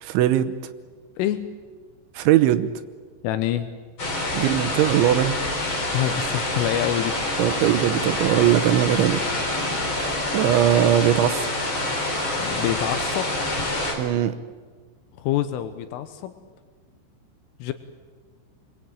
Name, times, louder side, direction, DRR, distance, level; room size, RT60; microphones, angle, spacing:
voice 1, 0.0-0.5 2.1-2.7 4.3-5.4 7.4-9.2 9.8-10.1 10.3-11.5 14.0-14.3, right 12 dB, 75° right, 10 dB, 3.1 m, -20 dB
voice 2, 1.2-1.5 3.2-3.7 5.9-7.2 12.4-13.3 15.2-16.4 17.6-17.7, left 12 dB, 80° left, 9 dB, 3.5 m, -26 dB
sound 1, 4.0-13.9, left 2 dB, 25° left, 4.8 m, -26 dB
30.0 x 21.5 x 9.0 m, 1.5 s
omnidirectional pair, 5.8 m